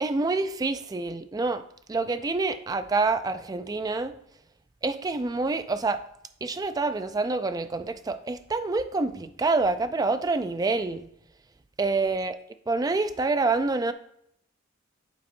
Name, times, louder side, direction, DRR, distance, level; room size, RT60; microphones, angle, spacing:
voice 1, 0.0-1.6 1.9-4.2 4.8-6.0 6.4-11.1 11.8-12.4 12.7-13.9, right 3 dB, 20° right, 10 dB, 0.3 m, -27 dB
7.5 x 4.2 x 4.3 m, 0.72 s
head